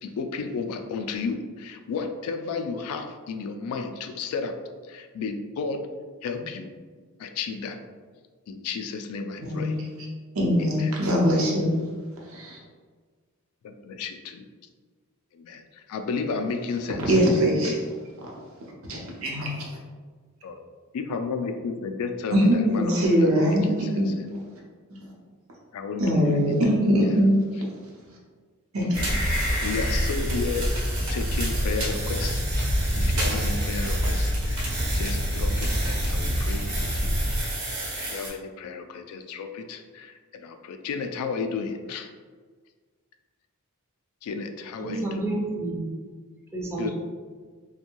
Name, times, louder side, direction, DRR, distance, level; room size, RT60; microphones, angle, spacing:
voice 1, 0.0-4.5 4.9-5.8 6.2-6.7 7.2-7.8 8.5-9.8 10.6-10.9 13.6-14.4 15.3-17.2 20.4-20.6 20.9-24.0 25.7-26.5 29.6-30.7 31.1-37.2 37.5-37.6 37.9-42.1 44.2-45.2 46.8-46.9, left 4 dB, 80° left, 11 dB, 0.3 m, -33 dB
voice 2, 9.4-9.7 10.3-11.8 12.2-12.6 17.0-17.8 18.2-18.3 18.9-19.8 22.3-24.1 24.9-25.1 26.0-27.3 28.7-29.2, equal, 70° right, -3 dB, 0.7 m, -22 dB
sound 1, 28.9-38.3, equal, 90° right, 1.0 m, -26 dB
voice 3, 44.8-45.9 46.5-46.9, right 2 dB, 10° right, -3 dB, 0.4 m, -29 dB
2.5 x 2.2 x 2.9 m, 1.5 s
head